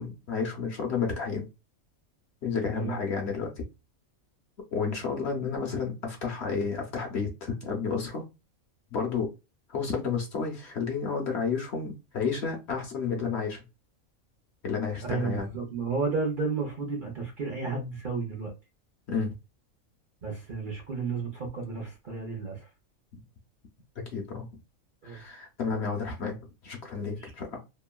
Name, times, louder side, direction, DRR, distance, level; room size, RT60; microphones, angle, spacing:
voice 1, 0.0-1.5 2.4-3.6 4.7-8.2 8.9-9.3 9.7-13.6 14.6-15.5 19.1-19.3 24.1-24.5 25.0-26.4 26.6-27.6, left 5 dB, 60° left, 0.8 m, -31 dB
voice 2, 15.0-18.5 20.2-22.7 25.0-25.2 27.0-27.3, right 4 dB, 50° right, 0.6 m, -32 dB
2.9 x 2.2 x 2.2 m
omnidirectional pair, 1.5 m